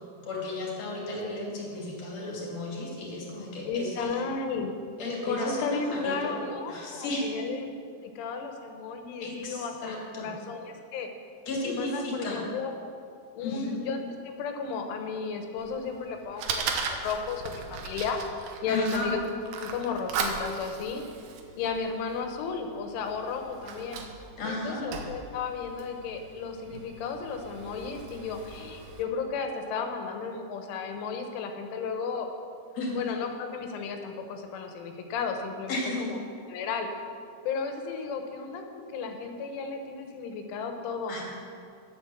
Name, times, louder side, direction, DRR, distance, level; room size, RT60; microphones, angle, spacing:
voice 1, 0.2-4.2 5.0-6.4 6.7-7.3 9.2-10.3 11.4-12.4 13.4-13.8 18.7-19.1 24.4-24.9 32.7-32.9 35.7-36.1 41.1-41.3, left 2 dB, 40° left, -3 dB, 3.2 m, -33 dB
voice 2, 3.7-4.7 5.3-7.7 8.0-11.1 11.6-12.7 13.3-18.2 18.6-19.2 19.6-21.0 21.6-24.0 24.4-32.3 32.9-36.2 36.5-36.9 37.5-41.3, left 5 dB, 80° left, 5 dB, 3.5 m, -34 dB
Fire, 15.6-29.0, right 5 dB, 75° right, 2.3 m, -38 dB
10.5 x 9.8 x 7.1 m, 2.4 s
omnidirectional pair, 5.5 m